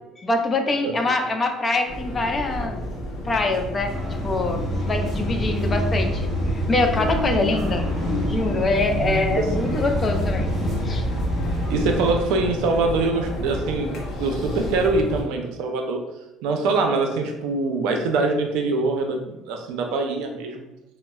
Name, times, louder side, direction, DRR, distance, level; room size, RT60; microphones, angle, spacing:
voice 1, 0.2-2.8 3.2-3.9 4.2-6.2 6.7-7.9 8.3-10.5 10.8-11.1, left 2 dB, 20° left, 4 dB, 0.3 m, -24 dB
sound 1, 1.9-15.2, equal, 50° left, 0.7 m, -30 dB
sound 2, 3.9-12.1, left 1 dB, 5° left, 1.0 m, -28 dB
voice 2, 8.9-9.9 11.7-16.0 16.4-20.7, right 3 dB, 80° right, 3 dB, 0.4 m, -24 dB
3.9 x 2.0 x 2.2 m, 0.99 s
cardioid pair, 155°, 0 cm